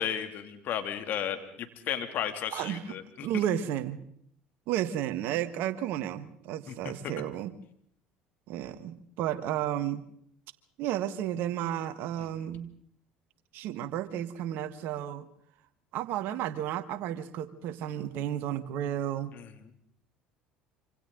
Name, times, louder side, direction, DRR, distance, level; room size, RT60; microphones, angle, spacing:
voice 1, 0.0-3.3 6.7-6.9 12.2-12.3 19.3-19.5, left 9 dB, 55° left, 7 dB, 2.7 m, -34 dB
voice 2, 2.5-3.0 3.2-4.0 4.7-7.5 8.5-10.0 10.8-12.7 13.5-15.3 15.9-19.3, right 11 dB, 60° right, 13 dB, 1.5 m, -32 dB
26.5 x 26.0 x 3.9 m, 0.66 s
hypercardioid pair, 70°, 4 cm